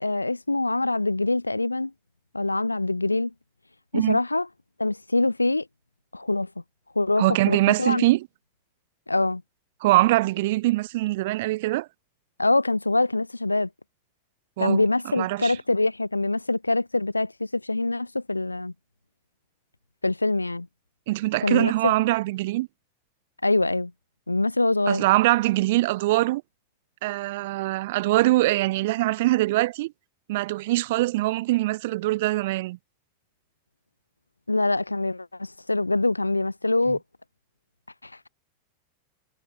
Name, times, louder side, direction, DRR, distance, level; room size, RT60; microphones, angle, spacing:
voice 1, 0.0-1.9 2.3-3.3 3.9-4.5 4.8-5.7 6.1-6.5 7.0-8.1 9.1-9.4 12.4-13.7 14.6-18.7 20.0-20.7 21.4-21.9 23.4-23.9 24.3-25.0 34.5-37.0 38.0-38.3, left 2 dB, 85° left, 0.6 m, -24 dB
voice 2, 7.2-8.3 9.8-11.9 14.6-14.8 15.2-15.5 21.1-22.7 24.9-26.4 27.0-29.9 30.3-32.8, right 18 dB, 50° right, 0.9 m, -23 dB
figure-of-eight pair, 90°, 0 cm